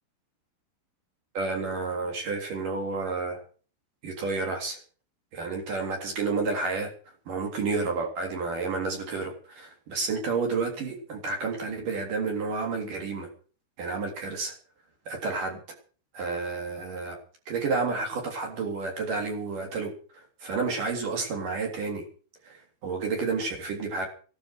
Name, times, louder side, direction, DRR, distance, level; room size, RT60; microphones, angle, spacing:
voice 1, 1.3-3.4 4.0-4.8 5.3-6.9 7.3-13.3 13.8-14.5 15.1-15.6 16.1-17.2 17.5-19.9 20.4-22.0 22.5-24.1, right 4 dB, 45° right, 2 dB, 4.5 m, -30 dB
16.5 x 12.0 x 6.5 m, 0.41 s
omnidirectional pair, 5.8 m